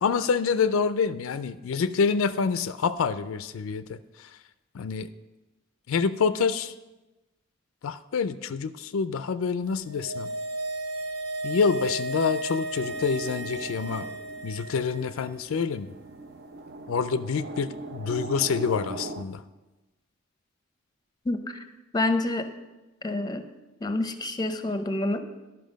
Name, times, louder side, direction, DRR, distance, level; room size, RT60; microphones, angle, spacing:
voice 1, 0.0-4.3 4.7-5.1 5.9-6.7 7.8-10.3 11.4-14.1 14.4-15.9 16.9-19.4, left 5 dB, 80° left, 13 dB, 0.4 m, -27 dB
sound 1, 9.7-15.2 15.5-15.6, right 2 dB, 80° right, 2.6 m, -34 dB
sound 2, 12.8-19.2, right 2 dB, 55° right, 0.6 m, -41 dB
voice 2, 21.2-21.6 21.9-22.5 23.0-23.5 23.8-25.2, left 2 dB, 20° left, 8 dB, 0.6 m, -27 dB
11.5 x 5.8 x 5.1 m, 1.1 s
head